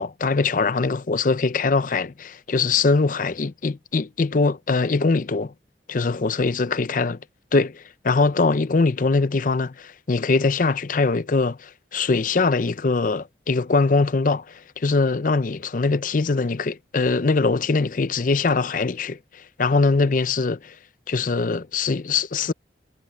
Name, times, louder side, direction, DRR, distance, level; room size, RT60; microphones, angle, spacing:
voice 1, 0.0-5.5 5.9-7.2 7.5-20.8 21.1-22.5, left 3 dB, 45° left, 0.6 m, -22 dB
head